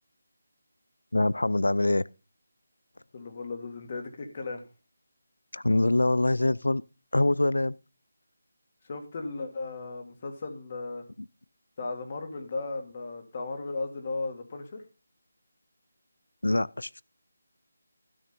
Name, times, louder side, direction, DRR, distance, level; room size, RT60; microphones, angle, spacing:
voice 1, 1.1-2.0 5.5-6.8 7.1-7.7 16.4-17.0, left 2 dB, 85° left, 0.4 m, -24 dB
voice 2, 3.1-4.6 8.8-11.0 11.8-14.8, left 3 dB, 40° left, 2.1 m, -36 dB
12.5 x 6.3 x 5.2 m
figure-of-eight pair, 165°, 0 cm